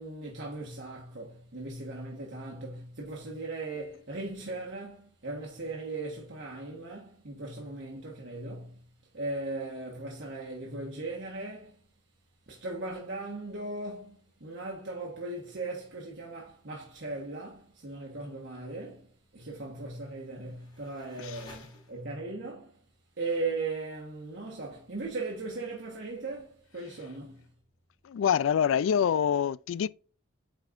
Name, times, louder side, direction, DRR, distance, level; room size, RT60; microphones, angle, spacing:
voice 1, 0.0-8.8 9.1-11.8 12.5-22.8 23.2-27.4, right 2 dB, 60° right, 1.4 m, -38 dB
sound 1, 20.0-22.4, left 2 dB, 20° left, 1.7 m, -55 dB
voice 2, 28.0-29.9, left 8 dB, 85° left, 0.3 m, -26 dB
8.9 x 4.2 x 2.5 m
head